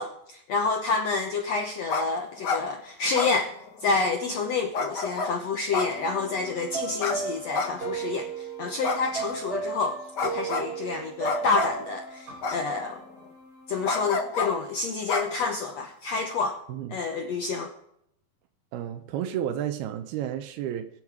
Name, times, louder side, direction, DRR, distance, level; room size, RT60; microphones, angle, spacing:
voice 1, 0.0-3.5 3.8-13.0 13.7-16.6 16.9-17.7, left 4 dB, 70° left, 3 dB, 1.6 m, -28 dB
sound 1, 1.9-2.1 2.3-2.6 3.1-3.9 4.7-5.3 5.7-6.4 7.0-7.2 7.5-8.1 8.8-9.5 10.2-10.7 11.2-11.8 12.4-13.0 13.8-14.5 15.1-15.8, left 4 dB, 85° left, 0.9 m, -29 dB
sound 2, 5.9-14.2, right 5 dB, 25° right, 4.2 m, -36 dB
voice 2, 16.7-17.0 18.7-20.9, right 10 dB, 90° right, 6 dB, 2.9 m, -31 dB
23.5 x 8.0 x 4.7 m, 0.76 s
omnidirectional pair, 4.3 m